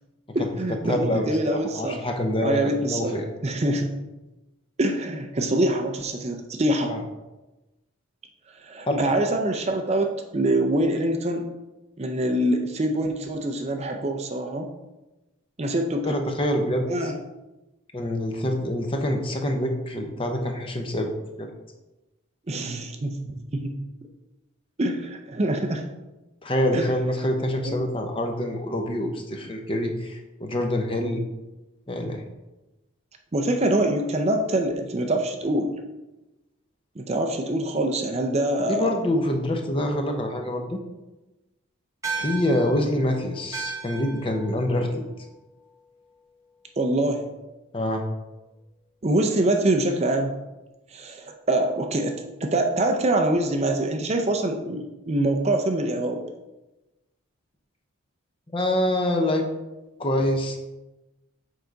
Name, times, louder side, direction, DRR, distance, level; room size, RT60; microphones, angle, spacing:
voice 1, 0.3-2.1 2.4-3.9 4.8-7.0 8.6-11.5 12.0-14.7 15.6-16.2 16.9-17.2 22.5-23.7 24.8-25.9 26.7-26.8 27.6-27.8 33.3-35.7 37.0-38.9 44.8-44.9 46.8-47.3 49.0-50.3 50.9-56.2, right 1 dB, 30° right, 4 dB, 0.5 m, -25 dB
voice 2, 0.9-3.3 6.9-7.0 8.9-9.0 16.0-17.1 17.9-21.1 21.4-21.5 26.4-31.2 31.9-32.2 38.7-40.8 42.1-45.0 47.7-48.0 58.5-59.5 60.0-60.6, left 1 dB, 25° left, 3 dB, 0.7 m, -26 dB
sound 1, 42.0-46.7, right 4 dB, 15° right, 0.9 m, -37 dB
6.9 x 4.8 x 3.9 m, 1.0 s
head